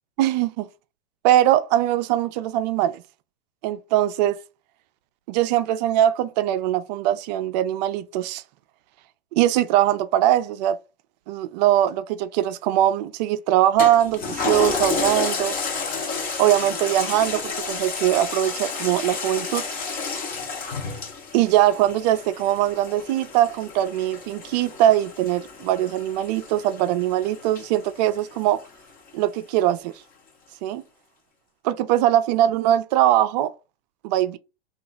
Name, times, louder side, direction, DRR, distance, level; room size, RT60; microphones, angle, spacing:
voice 1, 0.2-0.7 1.2-3.0 3.6-4.4 5.3-8.4 9.3-10.8 11.3-15.6 16.4-19.6 21.3-28.6 29.1-29.9 30.6-30.8 31.6-33.5 34.0-34.4, right 12 dB, 45° right, 0.4 m, -21 dB
Toilet flush, 13.8-28.6 29.1-29.2, left 4 dB, 30° left, 0.8 m, -31 dB
2.8 x 2.4 x 3.8 m
hypercardioid pair, 120°, 30 cm